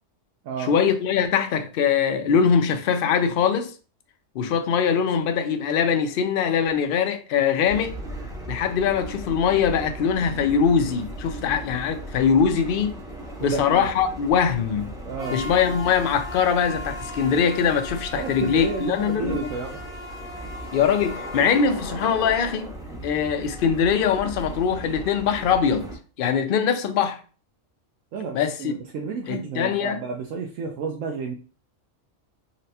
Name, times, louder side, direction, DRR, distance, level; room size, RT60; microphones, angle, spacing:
voice 1, 0.6-3.7 4.3-8.0 8.5-12.9 13.4-14.9 15.3-19.5 20.7-22.7 23.0-25.9 26.2-27.2 28.3-28.7 29.3-30.0, left 7 dB, 65° left, 0.5 m, -22 dB
sound 1, 7.6-25.9, right 1 dB, 5° right, 0.4 m, -36 dB
voice 2, 13.4-13.9 15.1-15.4 18.1-19.8 28.1-31.3, right 5 dB, 85° right, 1.0 m, -31 dB
4.0 x 2.1 x 2.7 m
omnidirectional pair, 1.3 m